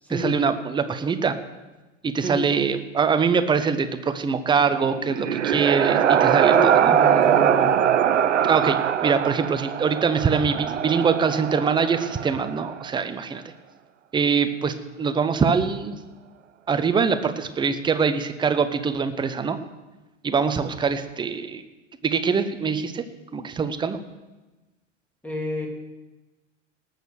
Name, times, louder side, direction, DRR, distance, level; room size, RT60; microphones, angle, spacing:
voice 1, 0.1-1.4 2.0-6.9 8.4-13.4 14.1-16.0 16.7-19.6 20.2-21.6 22.0-23.0 23.3-24.0, right 5 dB, 10° right, 10 dB, 0.7 m, -23 dB
sound 1, 4.8-12.7, right 9 dB, 70° right, 0.7 m, -21 dB
voice 2, 6.5-7.8 25.2-25.7, left 1 dB, 5° left, 1 dB, 2.5 m, -30 dB
18.5 x 6.6 x 6.3 m, 1.1 s
figure-of-eight pair, 85°, 37 cm